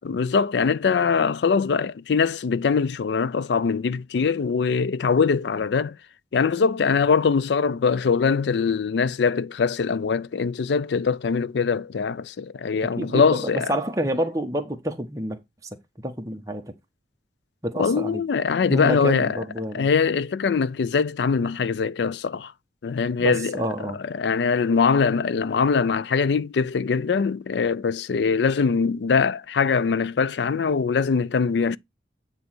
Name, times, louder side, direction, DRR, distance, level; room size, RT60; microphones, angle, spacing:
voice 1, 0.0-6.0 6.3-13.7 17.8-19.4 19.7-22.5 22.8-31.8, left 5 dB, 75° left, 0.4 m, -22 dB
voice 2, 13.0-15.4 16.0-16.7 17.6-18.2 18.7-19.9 23.2-24.0, right 1 dB, 20° right, 1.1 m, -28 dB
9.4 x 3.2 x 6.0 m
head